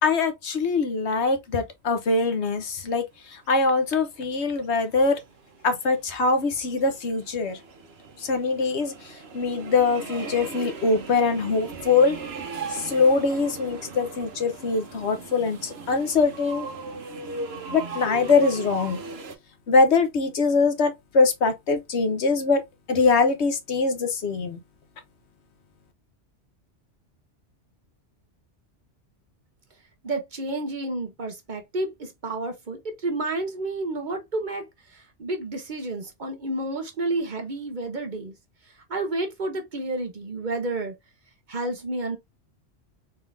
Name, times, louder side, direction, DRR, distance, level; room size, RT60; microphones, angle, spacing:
voice 1, 0.0-3.0 3.3-5.2 5.6-7.6 8.2-8.9 9.3-12.2 12.7-16.7 17.7-19.0 19.7-22.6 22.9-24.6, left 4 dB, 75° left, 1.3 m, -23 dB
sound 1, 3.5-19.4, right 4 dB, 65° right, 1.2 m, -39 dB
voice 2, 30.0-38.3 38.9-41.0 41.5-42.2, right 2 dB, 45° right, 1.0 m, -30 dB
4.1 x 3.6 x 2.6 m
omnidirectional pair, 1.1 m